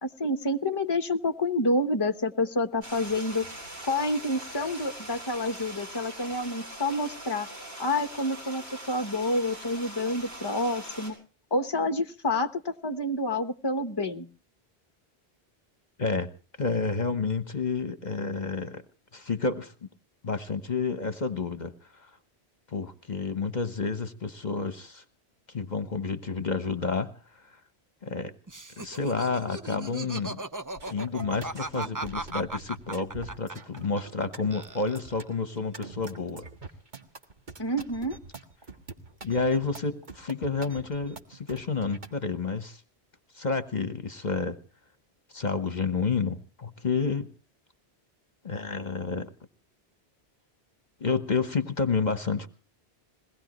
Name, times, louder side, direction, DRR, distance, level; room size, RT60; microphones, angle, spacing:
voice 1, 0.0-3.4 3.9-7.5 7.8-11.2 11.5-14.3 37.6-38.2, left 1 dB, 25° left, 8 dB, 1.1 m, -28 dB
Stream, 2.8-11.1, right 1 dB, 75° right, 8.0 m, -42 dB
voice 2, 16.6-18.8 19.1-19.7 20.2-21.7 22.0-22.1 22.7-25.0 25.5-27.1 28.0-28.3 28.8-30.4 30.9-36.5 39.2-42.8 43.3-44.6 45.3-47.3 48.4-49.3 51.0-52.5, left 4 dB, 45° left, 9 dB, 1.3 m, -30 dB
Laughter, 28.5-34.3 34.5-35.3, right 2 dB, 20° right, 0.8 m, -37 dB
sound 1, 30.8-42.1, right 3 dB, 45° right, 1.8 m, -45 dB
22.0 x 18.5 x 3.1 m, 0.38 s
omnidirectional pair, 1.1 m